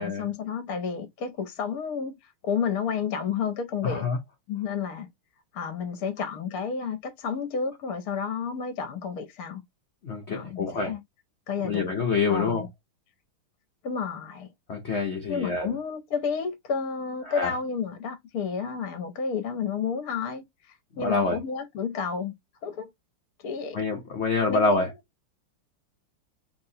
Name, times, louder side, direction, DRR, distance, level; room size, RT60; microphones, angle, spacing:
voice 1, 0.0-2.1 2.4-4.0 4.5-5.1 5.5-9.6 10.3-11.0 11.5-11.9 12.3-12.7 13.8-14.5 15.3-22.3 22.6-22.9 23.4-23.8 24.5-24.9, left 6 dB, 60° left, 1.0 m, -31 dB
voice 2, 3.8-4.2 10.0-10.9 11.6-12.7 14.7-15.7 17.3-17.5 20.9-21.4 23.7-24.9, left 4 dB, 75° left, 0.6 m, -26 dB
3.4 x 2.9 x 2.7 m
omnidirectional pair, 2.3 m